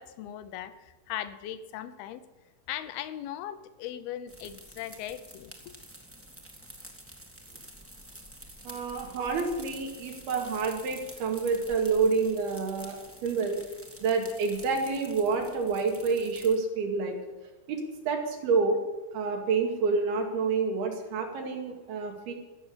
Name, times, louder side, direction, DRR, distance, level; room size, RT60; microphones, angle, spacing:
voice 1, 0.0-2.2 2.7-5.7, left 11 dB, 85° left, 11 dB, 2.8 m, -39 dB
sound 1, 4.3-16.6, right 1 dB, 15° right, 0.5 m, -49 dB
voice 2, 8.6-13.6 14.0-17.2 17.7-18.8 19.1-22.3, right 4 dB, 90° right, 2 dB, 4.2 m, -28 dB
16.0 x 7.1 x 9.7 m, 1.2 s
omnidirectional pair, 4.3 m